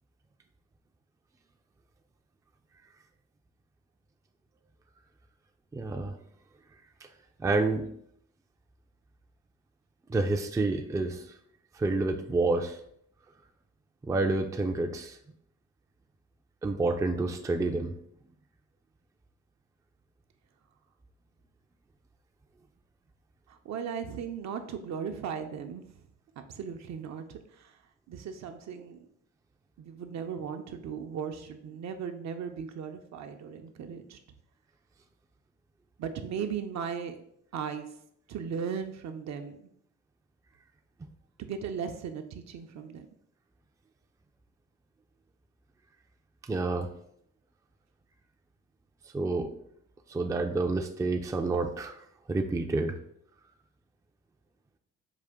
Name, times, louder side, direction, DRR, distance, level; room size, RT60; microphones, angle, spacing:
voice 1, 5.7-6.2 7.4-7.9 10.1-11.3 11.7-12.8 14.0-15.2 16.6-17.9 46.4-46.9 49.1-49.5 50.1-52.0 52.3-53.0, right 3 dB, 10° right, 4 dB, 0.4 m, -28 dB
voice 2, 23.5-25.8 26.4-27.8 28.1-29.1 29.8-34.2 36.0-37.2 37.5-37.9 38.3-39.6 41.4-43.1, right 7 dB, 65° right, 6 dB, 0.6 m, -37 dB
4.9 x 2.5 x 3.5 m, 0.69 s
cardioid pair, 90°, 30 cm